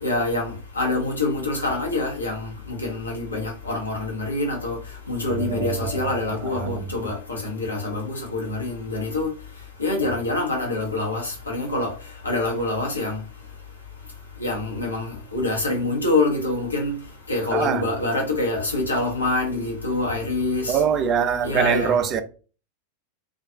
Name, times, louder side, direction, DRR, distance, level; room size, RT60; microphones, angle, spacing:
voice 1, 0.0-4.8 5.1-9.3 9.8-11.9 12.2-13.2 14.4-17.0 17.3-20.8 21.4-22.0, left 2 dB, 80° left, 0.7 m, -25 dB
voice 2, 5.3-6.1 6.6-6.8 17.5-17.8 20.7-22.2, right 7 dB, 30° right, 0.3 m, -23 dB
2.3 x 2.2 x 2.7 m
figure-of-eight pair, 90°, 0 cm